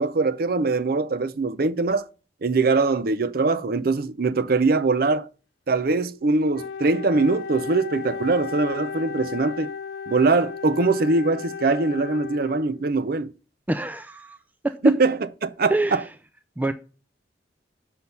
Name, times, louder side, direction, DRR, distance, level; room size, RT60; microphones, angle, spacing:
voice 1, 0.0-2.1 2.4-5.3 5.7-9.7 10.1-13.3 14.8-16.0, right 3 dB, 55° right, 0.6 m, -22 dB
Wind instrument woodwind instrument, 6.5-12.9, left 6 dB, 60° left, 0.4 m, -35 dB
voice 2, 13.7-14.4 14.6-14.9 15.7-16.1 16.6-16.7, right 2 dB, 10° right, 0.4 m, -25 dB
6.3 x 5.6 x 6.7 m
head